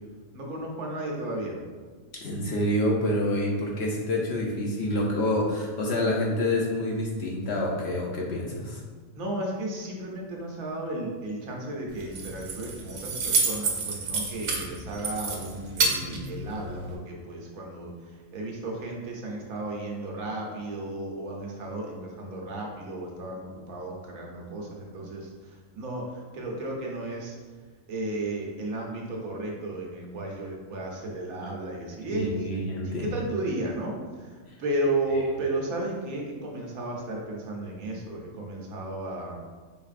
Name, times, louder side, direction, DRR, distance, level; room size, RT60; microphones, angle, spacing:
voice 1, 0.3-1.6 9.1-27.4 27.9-32.5 32.8-39.4, right 2 dB, 85° right, -1 dB, 1.3 m, -34 dB
voice 2, 2.2-8.8 31.4-31.5 32.1-33.1, left 1 dB, 60° left, -2 dB, 0.8 m, -27 dB
Keys jangling, 11.9-16.9, right 3 dB, 70° right, 1.1 m, -29 dB
4.8 x 3.4 x 2.5 m, 1.4 s
omnidirectional pair, 1.5 m